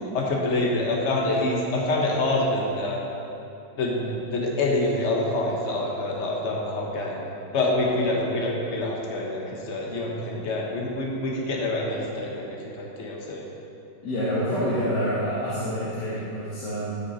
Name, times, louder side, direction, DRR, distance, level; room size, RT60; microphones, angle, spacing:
voice 1, 0.1-3.0 3.8-7.2 7.5-13.4, left 2 dB, 40° left, -2 dB, 1.4 m, -26 dB
voice 2, 14.0-17.0, equal, 70° left, -9 dB, 2.3 m, -27 dB
14.0 x 6.2 x 4.2 m, 2.8 s
omnidirectional pair, 1.9 m